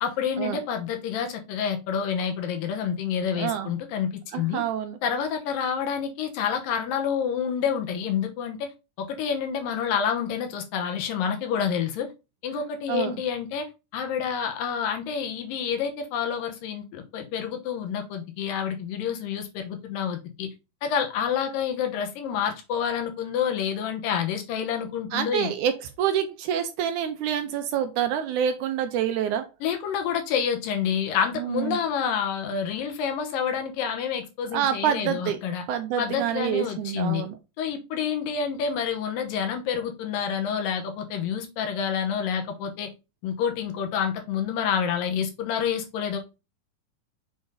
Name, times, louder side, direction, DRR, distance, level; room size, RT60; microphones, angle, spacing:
voice 1, 0.0-4.6 5.0-8.7 9.0-12.1 12.4-13.7 13.9-20.5 20.8-25.5 29.6-35.6 36.0-37.2 37.6-42.9 43.2-46.2, left 7 dB, 80° left, 5 dB, 2.7 m, -28 dB
voice 2, 3.4-3.7 4.3-5.0 12.9-13.2 25.1-29.5 31.4-31.8 34.5-35.4 35.7-37.3, right 9 dB, 75° right, 8 dB, 1.9 m, -27 dB
7.0 x 3.9 x 3.9 m, 0.27 s
omnidirectional pair, 4.0 m